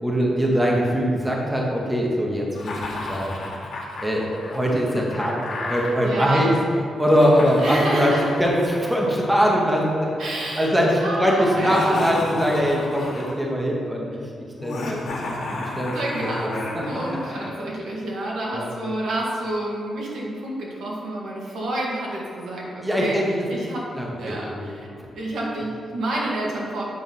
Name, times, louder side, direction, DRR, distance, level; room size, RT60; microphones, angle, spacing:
voice 1, 0.0-3.4 4.0-6.5 7.0-8.1 8.4-10.1 10.6-14.2 14.6-15.0 15.6-16.8 18.5-18.7 22.8-23.3 23.9-24.7, equal, 5° right, -2 dB, 0.9 m, -22 dB
Laughter, 2.5-6.0 6.9-10.2 11.5-13.5 14.6-17.5, left 2 dB, 65° left, 1.6 m, -33 dB
voice 2, 6.0-6.5 7.6-8.3 10.2-12.1 14.1-14.4 15.9-23.2 23.5-23.8 24.2-26.8, right 1 dB, 80° right, -4 dB, 1.8 m, -29 dB
7.4 x 4.5 x 5.8 m, 2.5 s
wide cardioid pair, 180°, 0 cm